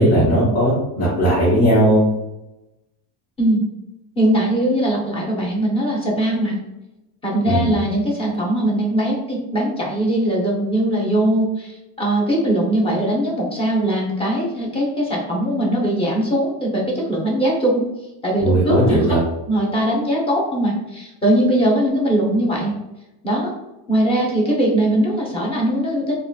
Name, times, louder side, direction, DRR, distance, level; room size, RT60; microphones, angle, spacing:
voice 1, 0.0-2.0 7.4-7.8 18.4-19.2, right 1 dB, 75° left, -9 dB, 1.3 m, -17 dB
voice 2, 4.2-6.6 7.2-17.8 18.2-19.2 19.5-22.7 23.2-23.5 23.9-26.2, right 1 dB, 15° left, -4 dB, 0.7 m, -20 dB
3.7 x 2.4 x 2.2 m, 0.96 s
cardioid pair, 165°, 42 cm